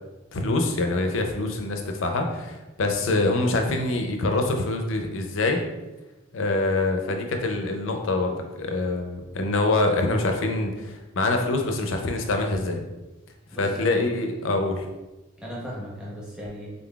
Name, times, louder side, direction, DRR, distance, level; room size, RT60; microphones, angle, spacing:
voice 1, 0.3-5.6 6.3-12.8 13.5-14.9, left 2 dB, 75° left, 4 dB, 0.5 m, -25 dB
voice 2, 13.5-14.0 15.4-16.7, equal, 5° right, -6 dB, 0.7 m, -36 dB
3.8 x 3.8 x 2.3 m, 1.1 s
head